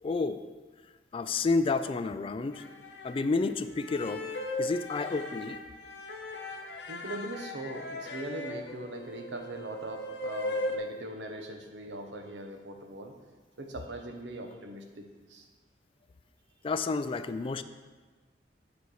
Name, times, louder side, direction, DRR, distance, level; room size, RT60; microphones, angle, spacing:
voice 1, 0.0-0.4 1.1-2.6 3.0-4.3 4.6-5.6 16.6-17.6, left 3 dB, 30° left, 11 dB, 0.3 m, -30 dB
sound 1, 2.5-3.2 3.8-10.8, left 1 dB, 75° left, 0.9 m, -38 dB
voice 2, 6.9-13.1 13.6-15.4, right 1 dB, 80° right, 4 dB, 1.0 m, -41 dB
8.3 x 4.4 x 6.3 m, 1.4 s
head